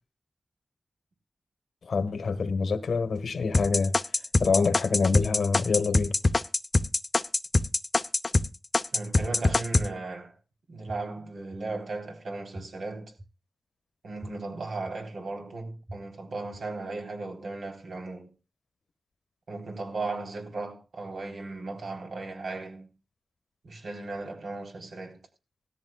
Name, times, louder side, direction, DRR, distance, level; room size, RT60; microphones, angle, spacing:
voice 1, 1.8-3.9 4.4-6.1, left 4 dB, 80° left, 1.4 m, -26 dB
sound 1, 3.5-8.5 8.7-9.9, left 2 dB, 35° left, 0.7 m, -23 dB
voice 2, 8.9-10.4 10.7-13.1 14.0-18.3 19.5-22.9 23.6-25.2, right 3 dB, 80° right, 3.7 m, -36 dB
sound 2, 9.2-9.3 9.8-9.9 10.9-11.0 11.5-11.6 12.5-12.6 13.2-13.3 14.2-14.3 14.8-14.9 15.9-16.0 16.5-16.6, right 1 dB, 20° right, 1.6 m, -40 dB
17.5 x 14.0 x 2.4 m
wide cardioid pair, 110°, 0 cm